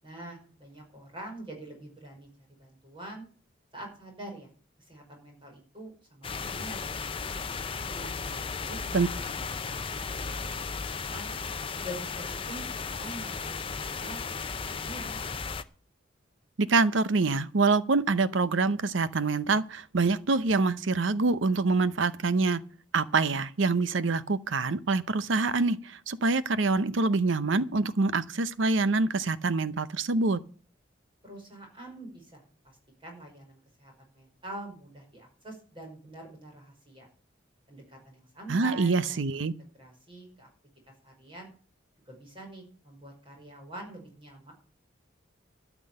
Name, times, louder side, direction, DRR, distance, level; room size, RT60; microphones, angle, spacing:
voice 1, 0.0-2.3 2.6-3.2 3.7-4.5 4.9-7.4 7.9-11.3 11.8-15.2 31.2-37.1 37.7-40.5 41.0-41.5 42.1-44.5, right 1 dB, 25° right, 5.6 m, -45 dB
sound 1, 6.2-15.6, left 5 dB, 30° left, 0.6 m, -35 dB
voice 2, 16.6-22.6 22.9-30.4 38.5-39.5, right 3 dB, 75° right, 0.7 m, -25 dB
13.0 x 6.1 x 8.8 m
head